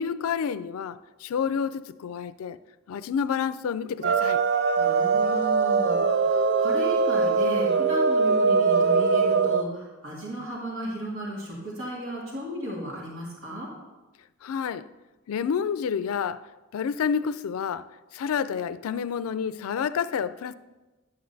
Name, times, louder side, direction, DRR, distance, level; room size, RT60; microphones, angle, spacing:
voice 1, 0.0-2.6 2.9-4.4 14.4-14.9 15.3-16.4 16.7-17.9 18.1-20.5, left 7 dB, 90° left, 0.4 m, -29 dB
sound 1, 4.0-9.6, right 4 dB, 55° right, 0.4 m, -22 dB
voice 2, 4.8-13.7, equal, 80° right, 2.0 m, -35 dB
10.5 x 8.7 x 2.7 m
head